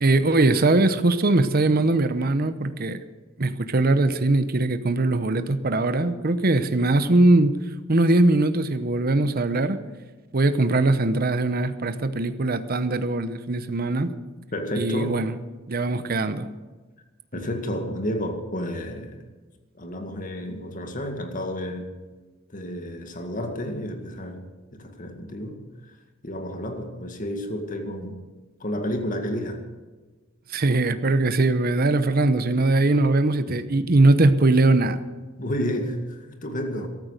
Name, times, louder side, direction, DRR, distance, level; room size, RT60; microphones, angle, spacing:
voice 1, 0.0-3.0 3.4-7.5 7.9-9.8 10.3-14.1 14.7-15.3 15.7-16.5 30.5-35.0, right 2 dB, 50° right, 11 dB, 0.9 m, -21 dB
voice 2, 14.5-15.2 17.3-19.2 19.8-21.9 22.5-25.6 26.2-28.2 28.6-29.6 35.4-36.9, equal, 45° left, 5 dB, 2.0 m, -31 dB
14.0 x 13.0 x 6.6 m, 1.3 s
head